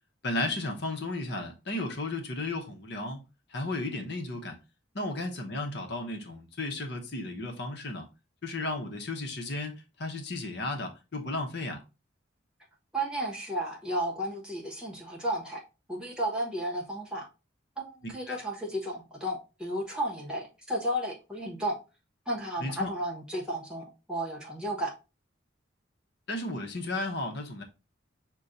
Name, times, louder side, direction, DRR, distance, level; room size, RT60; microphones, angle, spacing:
voice 1, 0.2-3.2 3.5-4.6 4.9-8.1 8.4-11.8 18.3-18.4 22.6-22.9 26.3-27.6, left 2 dB, 55° left, 0.9 m, -34 dB
voice 2, 12.9-15.6 15.9-17.3 17.8-21.8 22.3-24.9, right 1 dB, 5° right, 1.2 m, -33 dB
6.1 x 2.3 x 3.9 m
head